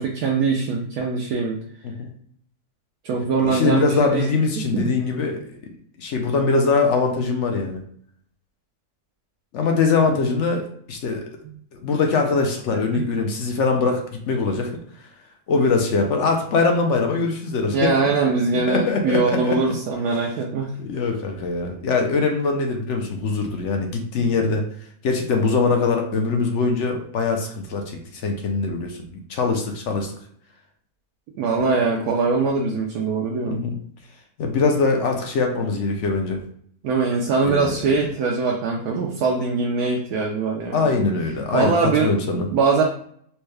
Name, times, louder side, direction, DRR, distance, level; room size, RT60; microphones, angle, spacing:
voice 1, 0.0-1.6 3.0-4.3 4.7-5.0 12.9-13.1 17.7-20.7 31.4-33.6 36.8-40.9 41.5-42.2 42.5-42.8, right 4 dB, 75° right, -1 dB, 1.1 m, -22 dB
voice 2, 3.4-5.4 6.0-7.8 9.5-11.2 11.7-14.7 15.5-18.1 18.5-19.6 20.8-24.6 25.0-30.1 33.5-33.8 34.4-36.4 37.4-37.9 40.7-42.5, left 4 dB, 60° left, 3 dB, 0.8 m, -22 dB
4.4 x 2.2 x 3.2 m, 0.62 s
omnidirectional pair, 1.6 m